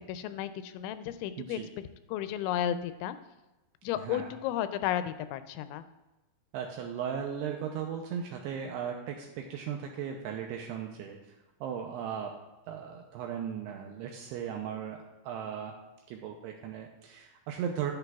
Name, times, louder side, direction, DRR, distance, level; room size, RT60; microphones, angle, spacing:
voice 1, 0.1-1.6 2.1-3.2 3.8-5.8, left 11 dB, 85° left, 11 dB, 2.9 m, -33 dB
voice 2, 1.4-1.7 4.0-4.3 6.5-11.2 11.6-12.3 12.7-15.8 16.1-17.9, right 8 dB, 85° right, 2 dB, 2.4 m, -37 dB
11.0 x 10.5 x 2.4 m, 1.0 s
omnidirectional pair, 5.3 m